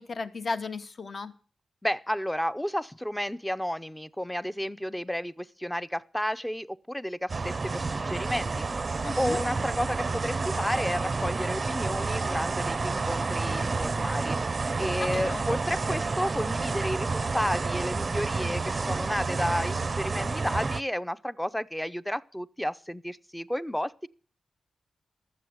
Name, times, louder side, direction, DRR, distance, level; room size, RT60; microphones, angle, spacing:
voice 1, 0.0-1.3 9.0-9.4 15.0-15.4, left 3 dB, 45° left, 1.0 m, -35 dB
voice 2, 1.8-8.7 9.2-24.1, equal, 5° left, 0.6 m, -32 dB
sound 1, 7.3-20.8, right 4 dB, 40° right, 0.5 m, -30 dB
12.5 x 7.8 x 7.9 m
cardioid pair, 85°, 0 cm